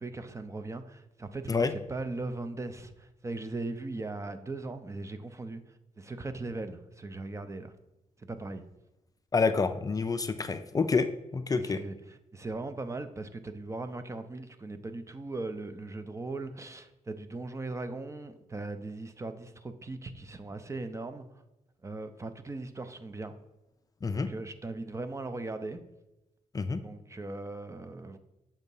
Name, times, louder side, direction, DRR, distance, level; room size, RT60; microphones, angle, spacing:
voice 1, 0.0-5.6 6.0-7.7 8.2-8.6 11.5-21.3 21.8-23.3 24.1-25.8 26.8-28.2, right 2 dB, 25° right, 0.5 m, -39 dB
voice 2, 9.3-11.8 24.0-24.3 26.5-26.8, left 4 dB, 30° left, 0.4 m, -28 dB
7.2 x 2.8 x 5.4 m
cardioid pair, 90°, 13 cm